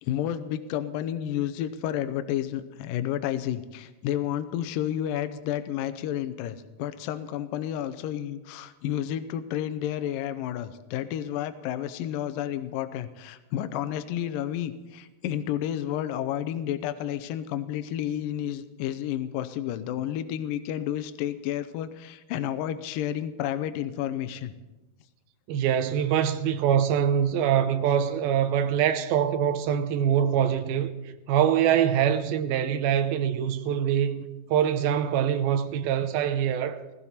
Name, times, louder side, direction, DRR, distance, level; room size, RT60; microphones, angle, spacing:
voice 1, 0.0-24.5, left 11 dB, 80° left, 2.0 m, -31 dB
voice 2, 25.5-30.9 31.3-34.2 34.5-36.8, right 9 dB, 80° right, 2.5 m, -24 dB
17.5 x 16.5 x 4.3 m
omnidirectional pair, 4.7 m